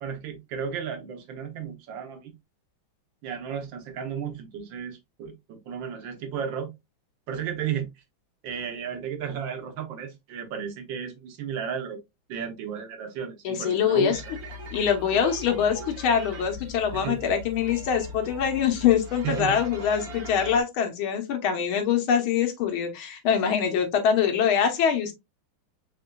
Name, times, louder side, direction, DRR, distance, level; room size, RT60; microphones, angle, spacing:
voice 1, 0.0-2.3 3.2-6.7 7.3-7.9 8.4-12.0 12.3-14.2 15.1-15.2 16.9-17.2 19.2-19.6, right 7 dB, 70° right, 1.5 m, -33 dB
voice 2, 13.4-14.2 14.7-25.1, left 8 dB, 85° left, 1.8 m, -24 dB
sound 1, 14.1-20.6, left 2 dB, 55° right, 1.4 m, -40 dB
4.2 x 3.7 x 2.2 m
omnidirectional pair, 2.2 m